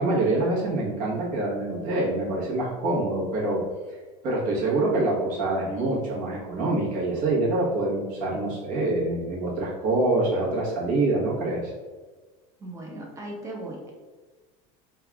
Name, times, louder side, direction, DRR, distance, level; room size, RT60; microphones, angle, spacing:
voice 1, 0.0-3.6 4.2-11.7, right 2 dB, 50° right, -4 dB, 1.2 m, -25 dB
voice 2, 12.6-13.9, right 1 dB, 15° right, -1 dB, 0.7 m, -37 dB
3.3 x 2.4 x 3.4 m, 1.3 s
supercardioid pair, 140°, 17 cm